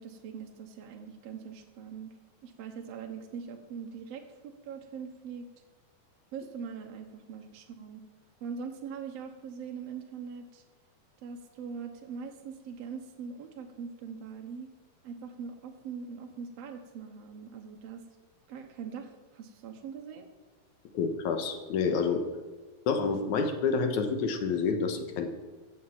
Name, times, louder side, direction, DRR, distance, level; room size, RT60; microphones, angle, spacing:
voice 1, 0.0-5.5 6.3-8.0 8.4-10.6 11.2-14.7 15.0-18.1 18.5-20.3, right 6 dB, 60° right, 3 dB, 1.9 m, -42 dB
voice 2, 20.9-22.3 22.9-25.3, left 5 dB, 70° left, 6 dB, 2.5 m, -28 dB
15.5 x 7.8 x 7.2 m, 1.3 s
omnidirectional pair, 3.7 m